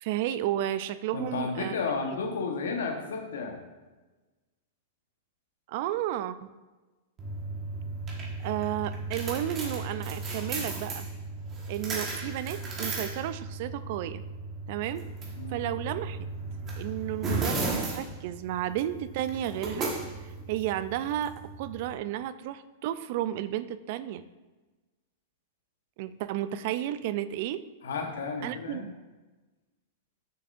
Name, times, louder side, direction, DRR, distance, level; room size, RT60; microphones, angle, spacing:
voice 1, 0.0-1.7 5.7-6.5 8.4-11.1 11.7-14.2 14.7-15.1 15.5-16.3 16.8-19.9 20.2-21.3 21.6-24.2 26.0-27.6 28.4-28.8, right 12 dB, 55° right, 14 dB, 0.3 m, -32 dB
voice 2, 1.1-3.6 15.4-15.6 27.8-28.9, left 4 dB, 80° left, 3 dB, 1.0 m, -32 dB
sound 1, 7.2-21.9, right 3 dB, 30° right, 1.3 m, -35 dB
6.9 x 5.9 x 2.5 m, 1.2 s
hypercardioid pair, 120°, 0 cm